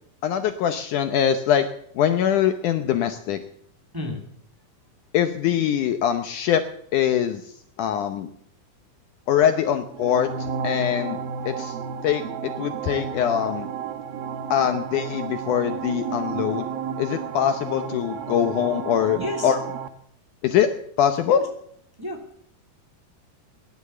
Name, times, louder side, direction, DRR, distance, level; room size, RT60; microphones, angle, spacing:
voice 1, 0.2-1.7 2.0-3.4 5.1-6.6 6.9-7.4 7.8-8.3 9.3-11.2 11.4-11.7 12.0-13.7 14.5-16.7 17.0-19.6 20.4-20.7 21.0-21.4, left 9 dB, 70° left, 9 dB, 2.1 m, -23 dB
sound 1, 9.9-19.9, right 6 dB, 85° right, 2.9 m, -32 dB
voice 2, 19.1-19.5 21.2-21.4 22.0-22.2, left 1 dB, 5° right, 2 dB, 1.9 m, -31 dB
18.0 x 11.0 x 6.8 m, 0.67 s
omnidirectional pair, 4.2 m